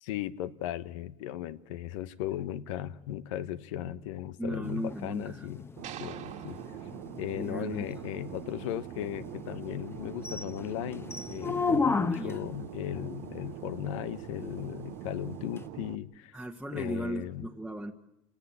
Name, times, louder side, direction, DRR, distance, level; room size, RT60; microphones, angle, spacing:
voice 1, 0.0-5.6 6.0-6.6 7.2-16.3 16.7-17.5, left 12 dB, 90° left, 13 dB, 1.1 m, -37 dB
voice 2, 4.4-5.5 7.3-7.9 12.1-12.4 16.3-17.9, right 1 dB, ahead, 0 dB, 1.3 m, -36 dB
sound 1, 4.6-12.5 15.6-15.7, left 4 dB, 15° left, 1.0 m, -35 dB
sound 2, 5.8-8.2, right 10 dB, 50° right, 2.0 m, -48 dB
Fixed-wing aircraft airplane, 5.8-16.0, right 15 dB, 75° right, 0.9 m, -44 dB
29.0 x 18.5 x 8.6 m, 0.92 s
supercardioid pair, 115°, 16 cm